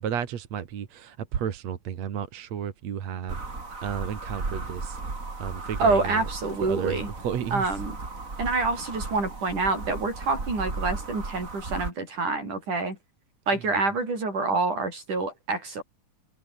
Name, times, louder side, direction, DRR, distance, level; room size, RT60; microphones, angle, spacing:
voice 1, 0.0-3.4 3.8-5.0 5.4-6.2 6.6-7.6, right 8 dB, 60° right, 3.1 m, -32 dB
sound 1, 3.3-11.9, right 3 dB, 25° right, 3.6 m, -35 dB
voice 2, 5.8-7.1 7.5-8.0 8.4-13.0 13.5-15.8, right 3 dB, 85° right, 9.7 m, -27 dB
omnidirectional pair, 3.5 m